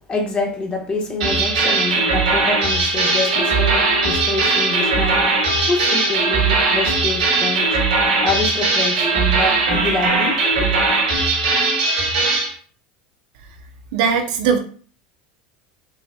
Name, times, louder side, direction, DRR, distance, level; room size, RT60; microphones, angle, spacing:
voice 1, 0.1-7.8 8.2-10.8, left 3 dB, 25° left, 0 dB, 1.2 m, -26 dB
sound 1, 1.2-12.5, right 3 dB, 85° right, 1.7 m, -19 dB
Wind instrument woodwind instrument, 2.9-7.5, left 6 dB, 60° left, 0.8 m, -32 dB
voice 2, 13.9-14.6, right 6 dB, 70° right, 5 dB, 0.7 m, -18 dB
5.4 x 2.5 x 2.2 m, 0.43 s
hypercardioid pair, 90°, 4 cm